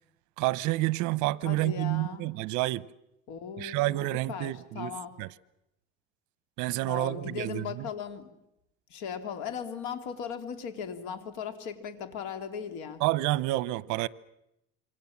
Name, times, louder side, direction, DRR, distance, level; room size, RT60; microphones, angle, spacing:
voice 1, 0.4-2.8 3.6-4.9 5.2-5.3 6.6-7.8 13.0-14.1, right 18 dB, 70° right, 0.9 m, -29 dB
voice 2, 1.4-2.3 3.3-3.9 4.3-5.1 6.8-8.3 8.9-13.0, left 7 dB, 70° left, 3.2 m, -38 dB
27.5 x 24.5 x 7.3 m
cardioid pair, 155°, 31 cm